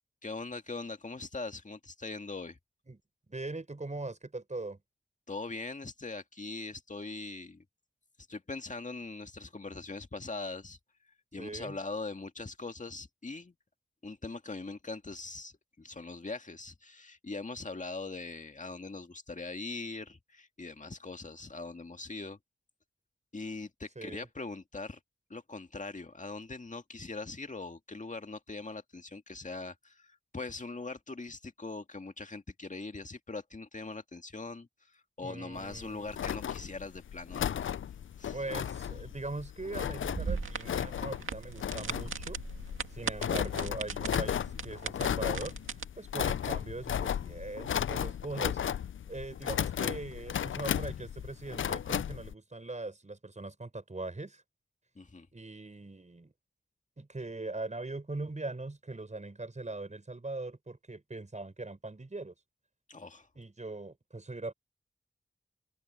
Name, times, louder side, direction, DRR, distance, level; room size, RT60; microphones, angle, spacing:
voice 1, 0.2-2.6 5.3-7.6 8.3-10.8 11.3-13.5 14.0-22.4 23.3-25.0 25.3-37.6 38.2-38.4 55.0-55.3 62.9-63.3, left 3 dB, 40° left, 2.0 m, -41 dB
voice 2, 3.3-4.8 11.4-11.8 23.9-24.3 35.2-36.1 38.3-42.4 42.9-45.6 45.9-48.6 49.1-54.4 55.3-56.3 57.0-62.3 63.3-64.5, right 2 dB, 35° right, 6.5 m, -41 dB
sound 1, 35.6-52.3, left 9 dB, 80° left, 0.4 m, -35 dB
sound 2, 40.0-45.8, right 5 dB, 90° right, 2.2 m, -39 dB
open air
wide cardioid pair, 60°, 20 cm